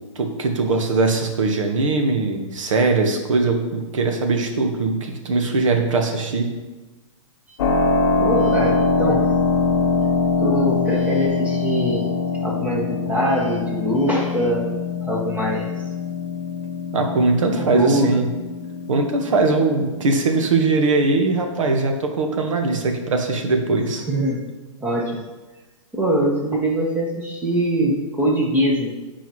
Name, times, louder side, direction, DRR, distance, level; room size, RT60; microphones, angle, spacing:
voice 1, 0.1-6.6 16.9-18.3 18.9-24.0, right 3 dB, 75° right, 4 dB, 1.2 m, -20 dB
Keyboard (musical), 7.6-20.1, left 4 dB, 50° left, 0.8 m, -23 dB
voice 2, 8.2-9.2 10.4-12.1 12.4-14.6 15.0-15.7 17.6-18.3 24.1-24.4 24.8-25.2 25.9-28.9, equal, 10° right, -2 dB, 1.2 m, -22 dB
9.2 x 4.6 x 3.0 m, 1.2 s
hypercardioid pair, 145°, 17 cm